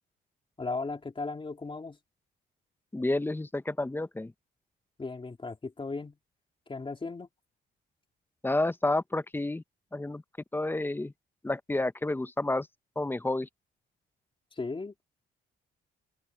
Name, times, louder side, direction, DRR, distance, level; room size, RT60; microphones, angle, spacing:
voice 1, 0.6-2.0 5.0-6.2 6.7-7.3 14.5-15.1, left 3 dB, 25° left, 3.0 m, -36 dB
voice 2, 2.9-4.3 8.4-9.6 9.9-10.2 10.5-11.1 11.4-12.7 13.0-13.5, left 2 dB, 10° left, 0.8 m, -30 dB
open air
cardioid pair, 90°, 20 cm